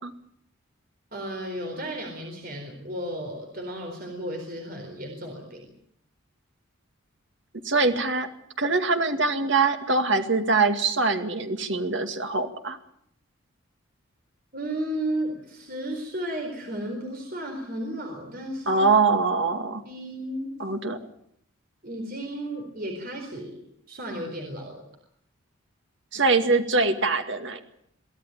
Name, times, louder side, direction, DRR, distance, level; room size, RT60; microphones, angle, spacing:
voice 1, 1.1-5.7 14.5-18.8 19.8-20.5 21.8-24.9, right 1 dB, 45° right, 3 dB, 4.2 m, -34 dB
voice 2, 7.6-8.3 8.6-12.8 18.7-19.8 20.6-21.0 26.1-27.6, right 3 dB, 60° right, 7 dB, 2.1 m, -23 dB
23.5 x 15.5 x 9.2 m, 0.69 s
head